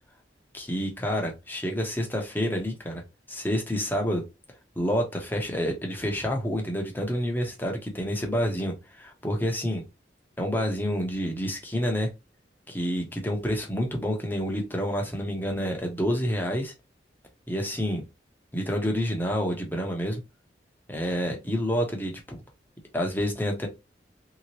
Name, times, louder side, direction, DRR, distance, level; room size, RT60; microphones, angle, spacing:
voice 1, 0.5-3.0 3.3-4.2 4.8-9.8 10.4-12.1 12.7-16.7 17.5-18.0 18.5-20.2 20.9-22.4 22.9-23.7, equal, 10° left, 1 dB, 0.9 m, -28 dB
3.5 x 2.9 x 3.1 m, 0.25 s
head